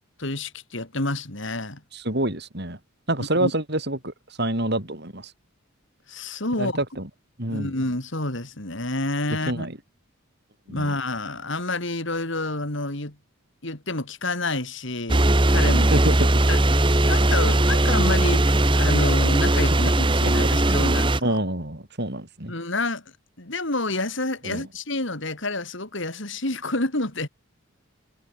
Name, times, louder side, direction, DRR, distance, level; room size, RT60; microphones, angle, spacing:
voice 1, 0.2-1.8 3.2-3.5 6.1-6.8 7.5-9.7 10.7-13.2 13.6-15.9 16.5-21.4 22.5-23.0 23.4-27.3, left 2 dB, 60° left, 3.4 m, -29 dB
voice 2, 1.9-2.8 3.1-4.1 4.4-5.3 6.6-7.1 7.4-7.7 9.5-9.8 10.7-10.9 15.9-16.3 19.7-19.8 20.2-20.3 20.7-20.9 21.2-22.5 24.4-24.7, right 1 dB, 50° right, 4.5 m, -27 dB
sound 1, 15.1-21.2, right 1 dB, 25° right, 1.2 m, -19 dB
head